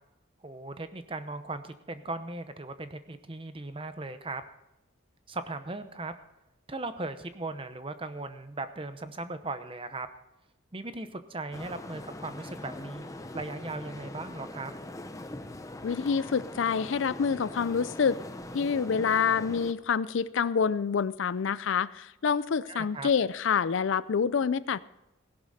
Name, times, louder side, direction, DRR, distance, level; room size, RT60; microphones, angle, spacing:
voice 1, 0.4-4.4 5.3-6.1 6.7-10.1 10.7-14.7 22.7-23.1, right 2 dB, 25° right, 10 dB, 0.8 m, -38 dB
sound 1, 11.5-19.7, left 1 dB, 15° left, 0.6 m, -42 dB
voice 2, 15.8-18.2 18.5-24.8, left 6 dB, 65° left, 17 dB, 0.4 m, -27 dB
16.5 x 11.5 x 4.2 m, 0.92 s
head